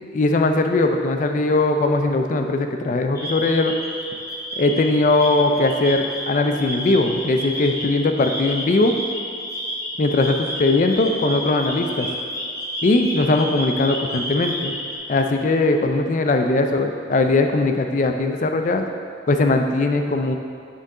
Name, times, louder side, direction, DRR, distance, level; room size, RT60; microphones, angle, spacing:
voice 1, 0.1-3.7 4.6-8.9 10.0-12.2 12.8-14.7 15.1-18.9 19.3-20.4, left 2 dB, 45° left, 5 dB, 0.4 m, -20 dB
sound 1, 3.2-15.0, left 1 dB, 15° left, 0.8 m, -30 dB
6.7 x 3.9 x 3.7 m, 2.3 s
head